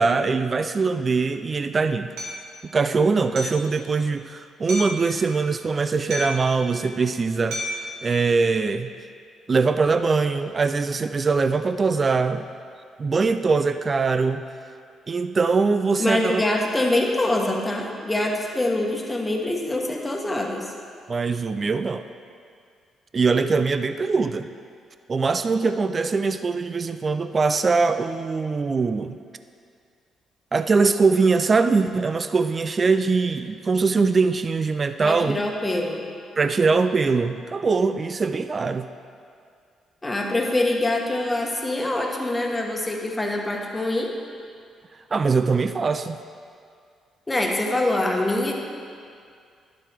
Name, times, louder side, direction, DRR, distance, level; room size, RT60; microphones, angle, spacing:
voice 1, 0.0-2.1 2.7-7.6 8.0-8.9 9.5-12.5 13.0-14.4 15.1-16.4 21.1-22.1 23.1-24.5 25.1-29.2 30.5-35.4 36.4-38.9 45.1-46.2, right 4 dB, 35° right, 10 dB, 0.3 m, -22 dB
Hammer, 2.2-2.4 3.4-3.7 4.7-5.0 6.1-6.5 7.5-7.9, equal, 85° right, 1.9 m, -31 dB
voice 2, 16.0-20.7 35.0-36.0 40.0-44.1 47.3-48.5, left 1 dB, 15° left, 0 dB, 1.2 m, -24 dB
11.5 x 7.5 x 3.4 m, 2.3 s
cardioid pair, 90°, 0 cm